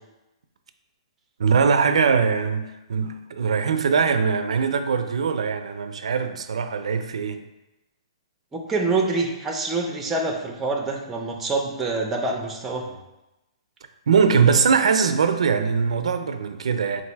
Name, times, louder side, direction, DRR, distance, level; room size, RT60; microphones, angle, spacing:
voice 1, 1.4-7.4 12.9-13.0 14.1-17.0, right 6 dB, 85° right, 8 dB, 0.4 m, -21 dB
voice 2, 8.5-12.9, right 3 dB, 10° right, 1 dB, 0.5 m, -26 dB
3.9 x 2.5 x 4.5 m, 0.97 s
hypercardioid pair, 155°, 3 cm